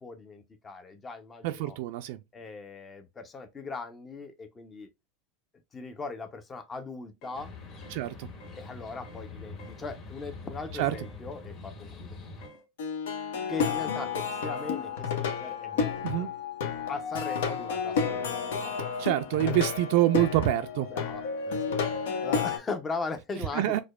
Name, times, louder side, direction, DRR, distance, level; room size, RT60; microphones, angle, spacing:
voice 1, 0.0-1.8 2.3-4.9 5.7-7.5 8.6-12.2 13.5-16.3 16.9-18.7 19.4-19.6 20.2-20.3 20.9-23.8, left 4 dB, 20° left, 0.5 m, -39 dB
voice 2, 1.4-2.2 7.9-8.3 10.8-10.9 16.0-16.3 19.0-20.9 23.5-23.8, right 15 dB, 65° right, 0.3 m, -26 dB
sound 1, 7.2-7.5 7.8-8.1 8.4-8.6 9.0-9.3 9.6-9.8 10.9-11.2 12.4-12.7 13.5-13.7 14.5-14.8, right 1 dB, 55° left, 1.0 m, -52 dB
sound 2, 7.3-12.5, left 3 dB, 35° left, 1.4 m, -44 dB
Plucked string instrument, 12.8-22.6, left 6 dB, 90° left, 0.9 m, -31 dB
4.8 x 2.2 x 2.2 m
supercardioid pair, 135°, 0 cm